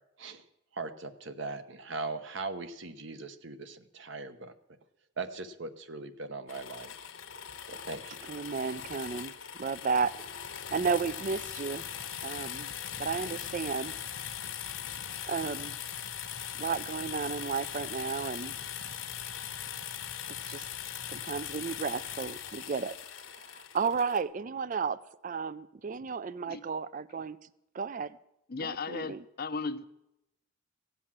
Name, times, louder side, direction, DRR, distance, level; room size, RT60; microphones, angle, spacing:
voice 1, 0.7-4.5 5.2-6.9 7.7-8.3, right 3 dB, 60° right, 1.0 m, -39 dB
sound 1, 6.5-24.2, left 9 dB, 65° left, 1.1 m, -40 dB
voice 2, 8.3-9.3 9.6-10.4 10.7-11.8 12.2-12.7 13.0-13.9 15.3-15.8 16.6-18.5 20.4-20.6 21.1-23.0 23.3-27.4 27.7-28.2 28.6-29.2, right 5 dB, 40° right, 0.4 m, -33 dB
voice 3, 28.5-29.8, left 4 dB, 45° left, 0.6 m, -36 dB
16.5 x 8.2 x 7.4 m
head